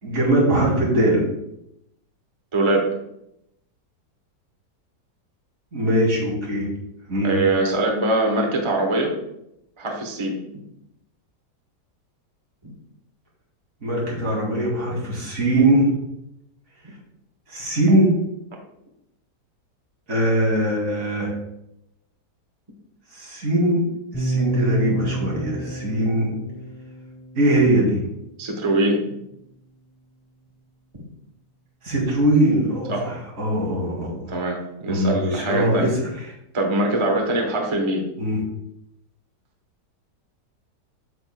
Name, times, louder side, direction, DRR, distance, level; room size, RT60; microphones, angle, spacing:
voice 1, 0.0-1.2 5.7-6.7 7.1-7.4 13.8-15.9 17.5-18.1 20.1-21.3 23.1-23.8 24.1-26.3 27.3-28.0 31.8-34.4 34.9-36.1 38.2-38.4, right 1 dB, 50° right, -4 dB, 2.7 m, -21 dB
voice 2, 2.5-2.9 7.2-9.2 9.8-10.4 12.6-12.7 14.9-15.0 28.4-29.2 32.9-33.1 34.3-35.9 36.5-38.1, right 2 dB, 25° right, 1 dB, 0.7 m, -22 dB
sound 1, 24.1-28.2, right 3 dB, 15° left, 0.9 m, -29 dB
8.2 x 6.5 x 2.2 m, 0.81 s
omnidirectional pair, 1.8 m